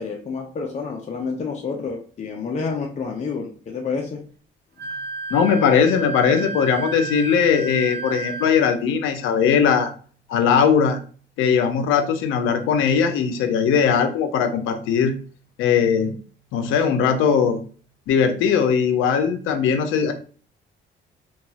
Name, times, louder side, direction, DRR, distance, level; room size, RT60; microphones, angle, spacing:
voice 1, 0.0-4.2, left 4 dB, 35° left, 1 dB, 0.5 m, -29 dB
Wind instrument woodwind instrument, 4.8-8.7, right 2 dB, 55° right, 0.7 m, -32 dB
voice 2, 5.3-9.9 10.3-11.0 11.4-15.1 15.6-16.1 16.5-17.6 18.1-20.1, left 7 dB, 90° left, 8 dB, 0.5 m, -19 dB
2.9 x 2.3 x 2.7 m, 0.42 s
cardioid pair, 90°, 20 cm